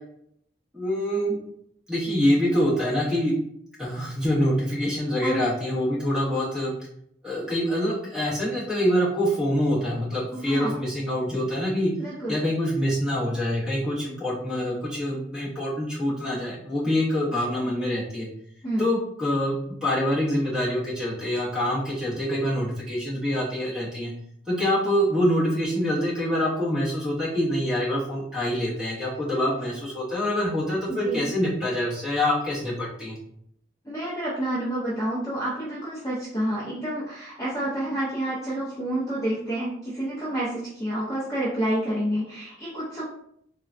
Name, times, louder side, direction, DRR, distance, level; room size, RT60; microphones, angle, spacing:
voice 1, 0.7-1.4 1.9-3.3 3.8-6.7 7.2-11.9 12.3-18.3 18.8-19.6 19.8-24.1 24.5-33.2, equal, 5° right, -8 dB, 1.0 m, -25 dB
voice 2, 10.3-10.8 12.0-12.4 18.6-18.8 29.3-29.4 30.9-31.2 33.8-43.1, right 1 dB, 20° left, -8 dB, 0.6 m, -29 dB
3.6 x 2.2 x 2.5 m, 0.71 s
head